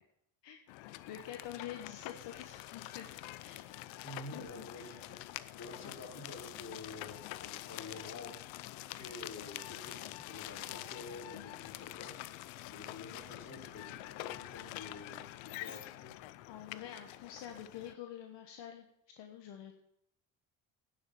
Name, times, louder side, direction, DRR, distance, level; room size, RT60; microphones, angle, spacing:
sound 1, 0.7-17.9, left 17 dB, 80° left, 0.7 m, -46 dB
voice 1, 1.1-3.7 4.3-5.0 16.5-18.9 19.2-19.7, left 10 dB, 65° left, 4 dB, 1.3 m, -47 dB
voice 2, 4.0-5.2 5.5-8.4 8.9-12.2 12.7-16.2, left 2 dB, 35° left, 0 dB, 3.2 m, -49 dB
9.6 x 6.9 x 7.0 m, 0.74 s
supercardioid pair, 75°, 46 cm